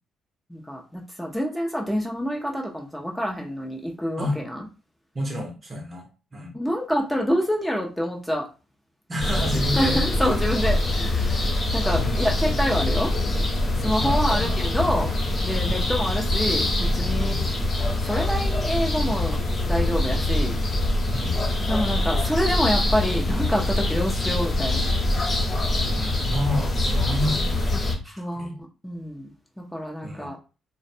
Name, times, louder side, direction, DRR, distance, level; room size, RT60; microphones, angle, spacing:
voice 1, 0.5-4.7 6.5-8.5 9.7-13.1 13.8-15.1 15.4-17.5 18.0-19.4 19.7-20.6 21.7-24.8 28.0-30.4, equal, 5° left, -1 dB, 0.5 m, -27 dB
voice 2, 5.1-6.5 9.1-10.0 12.0-12.5 14.0-14.5 14.8-15.0 15.6-15.8 17.1-17.4 21.1-21.4 25.8-28.5 30.0-30.3, left 1 dB, 35° right, 1 dB, 0.7 m, -30 dB
sound 1, 9.2-27.9, left 1 dB, 40° left, 0.7 m, -24 dB
2.4 x 2.0 x 2.7 m, 0.32 s
cardioid pair, 90°, 0 cm